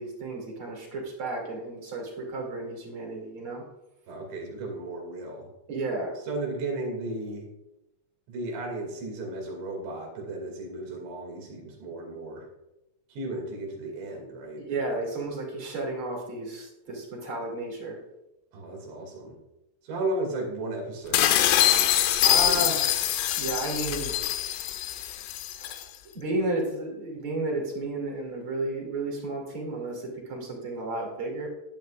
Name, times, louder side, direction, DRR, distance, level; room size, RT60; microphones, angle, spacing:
voice 1, 0.0-3.6 5.7-6.2 14.6-18.0 22.2-22.9 23.4-24.1 24.8-25.2 25.6-25.9 26.1-31.5, right 2 dB, 35° right, -1 dB, 2.4 m, -32 dB
voice 2, 4.1-5.5 6.2-7.5 8.3-12.5 13.1-15.0 18.5-19.4 19.8-21.4 22.5-22.7, right 2 dB, 65° right, 1 dB, 4.6 m, -35 dB
sound 1, 21.1-25.8, left 12 dB, 85° left, 3.4 m, -24 dB
13.5 x 10.5 x 2.5 m, 0.91 s
omnidirectional pair, 5.7 m